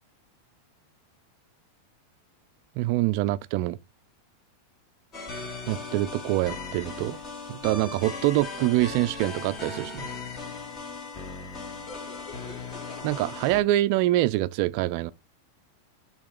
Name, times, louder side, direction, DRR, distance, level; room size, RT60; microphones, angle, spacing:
voice 1, 2.8-3.8 5.7-7.2 7.5-10.1 13.0-15.1, right 16 dB, 45° right, 0.4 m, -25 dB
sound 1, 5.1-13.6, left 3 dB, 30° left, 1.6 m, -38 dB
6.6 x 2.9 x 5.2 m
figure-of-eight pair, 90°, 0 cm